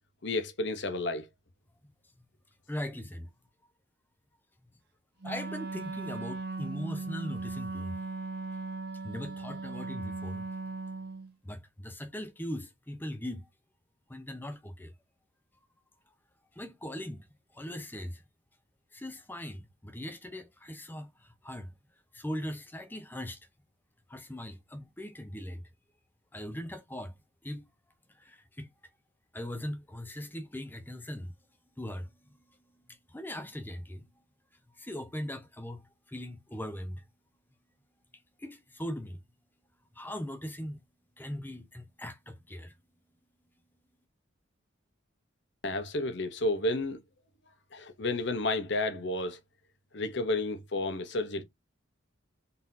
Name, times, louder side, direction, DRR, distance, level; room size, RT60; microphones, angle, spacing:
voice 1, 0.2-1.3 45.6-47.0 47.7-49.4 49.9-51.4, left 2 dB, 55° left, 0.8 m, -31 dB
voice 2, 2.7-3.3 5.2-8.0 9.0-10.4 11.4-13.5 14.1-14.9 16.6-17.3 17.5-18.2 18.9-21.7 22.1-23.4 24.1-25.7 26.3-27.1 27.4-27.7 28.2-28.7 29.3-31.3 31.8-34.1 34.8-37.0 38.4-39.2 39.9-40.8 41.2-42.8, left 1 dB, 10° left, 0.6 m, -40 dB
Wind instrument woodwind instrument, 5.2-11.3, right 3 dB, 50° right, 0.8 m, -38 dB
4.0 x 3.8 x 2.7 m
head